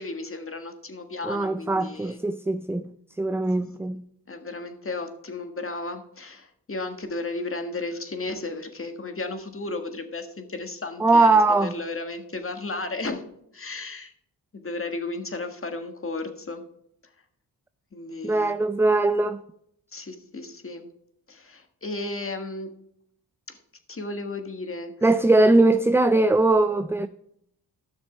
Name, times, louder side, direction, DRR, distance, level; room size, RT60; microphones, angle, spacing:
voice 1, 0.0-2.2 4.3-13.2 13.5-14.1 14.5-16.6 17.9-18.5 19.9-20.9 21.3-22.7 23.5-23.6 23.9-25.1, left 2 dB, 30° left, 1.7 m, -34 dB
voice 2, 1.2-2.8 3.2-4.0 11.0-11.8 18.2-19.4 25.0-27.1, right 2 dB, 5° right, 0.3 m, -20 dB
13.0 x 6.4 x 4.5 m
cardioid pair, 65°, 42 cm